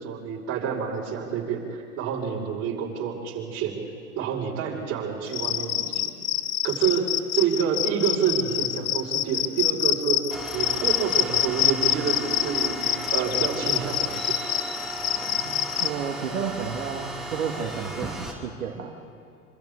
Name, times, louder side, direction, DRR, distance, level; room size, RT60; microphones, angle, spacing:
voice 1, 0.0-3.8 4.2-6.1 6.6-10.2 10.5-14.4, right 7 dB, 35° right, -4 dB, 5.4 m, -28 dB
Cricket, 5.3-15.9, left 11 dB, 80° left, 0.8 m, -26 dB
sound 1, 10.3-18.3, right 2 dB, ahead, 2.7 m, -35 dB
voice 2, 15.2-18.9, right 6 dB, 75° right, -1 dB, 2.0 m, -32 dB
26.0 x 26.0 x 3.8 m, 2.4 s
hypercardioid pair, 100°, 42 cm